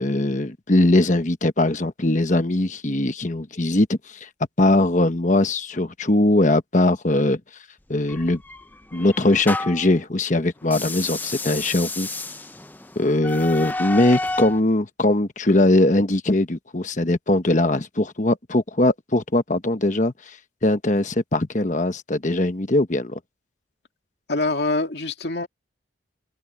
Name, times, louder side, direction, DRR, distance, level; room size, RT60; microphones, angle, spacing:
voice 1, 0.0-4.3 4.6-7.4 7.9-8.4 8.9-12.1 13.0-20.4 20.6-23.2, left 2 dB, 40° left, 1.1 m, -21 dB
sound 1, 8.1-9.9 10.6-14.6, left 2 dB, 10° left, 0.5 m, -31 dB
voice 2, 24.3-25.5, left 2 dB, 60° left, 2.4 m, -24 dB
head